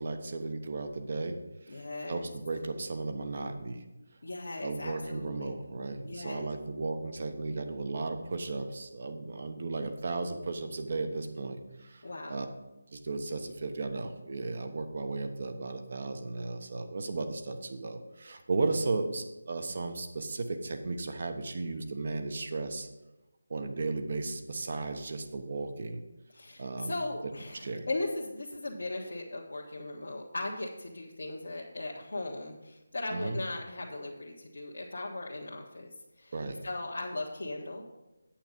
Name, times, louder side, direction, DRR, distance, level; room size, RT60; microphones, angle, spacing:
voice 1, 0.0-1.4 1.6-3.8 4.6-12.5 12.9-22.9 23.5-26.0 26.6-27.0 27.6-27.8 33.1-33.4 36.3-36.6, right 3 dB, 50° right, 6 dB, 1.1 m, -35 dB
voice 2, 1.7-2.3 4.2-5.5 6.0-6.5 12.0-12.4 26.3-35.9 36.2-36.4 36.6-37.8, left 2 dB, 65° left, -4 dB, 1.4 m, -38 dB
8.9 x 7.1 x 5.2 m, 1.0 s
figure-of-eight pair, 160°, 0 cm